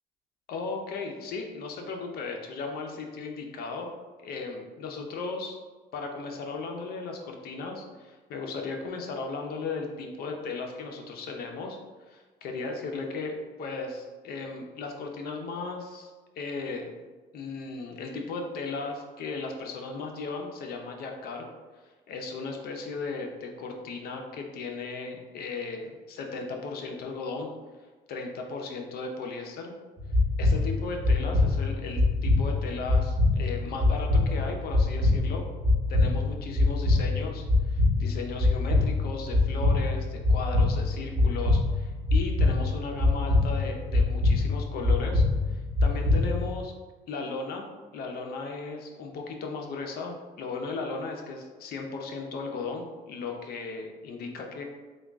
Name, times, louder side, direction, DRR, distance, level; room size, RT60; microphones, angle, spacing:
voice 1, 0.5-3.9 4.2-5.6 5.9-11.8 12.1-16.9 17.3-21.5 22.1-27.5 28.1-29.7 30.4-35.5 35.9-46.7 47.1-54.6, left 4 dB, 65° left, 2 dB, 0.6 m, -36 dB
sound 1, 30.0-46.6, left 2 dB, 10° right, 1.4 m, -24 dB
3.6 x 2.3 x 3.5 m, 1.3 s
cardioid pair, 110°, 17 cm